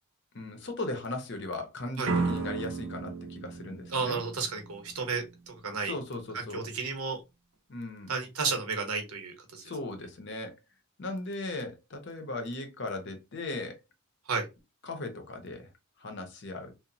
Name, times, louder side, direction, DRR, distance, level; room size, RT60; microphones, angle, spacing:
voice 1, 0.3-4.2 5.8-6.7 7.7-8.1 9.6-10.5 11.0-13.8 14.8-15.7 16.0-16.7, left 2 dB, 55° left, 0.6 m, -37 dB
sound 1, 2.0-4.9, right 4 dB, 65° right, 0.5 m, -33 dB
voice 2, 3.9-5.9 6.3-7.2 8.1-9.6 14.3-14.5, right 4 dB, 85° right, 0.8 m, -32 dB
2.9 x 2.0 x 2.6 m
head